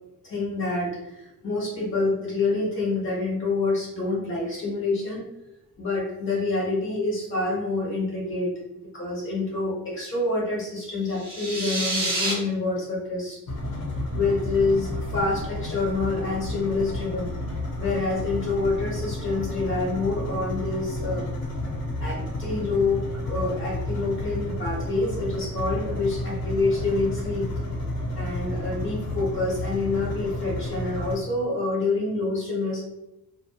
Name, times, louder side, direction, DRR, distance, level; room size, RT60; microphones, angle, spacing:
voice 1, 0.2-5.2 5.8-13.4 14.1-17.3 17.8-21.2 22.0-27.5 28.2-32.8, left 3 dB, 35° left, -5 dB, 1.0 m, -27 dB
sound 1, 11.1-12.3, right 2 dB, 25° right, 0.7 m, -28 dB
sound 2, 13.5-31.2, left 1 dB, 90° left, 0.8 m, -31 dB
2.7 x 2.3 x 2.2 m, 0.92 s
cardioid pair, 170°, 35 cm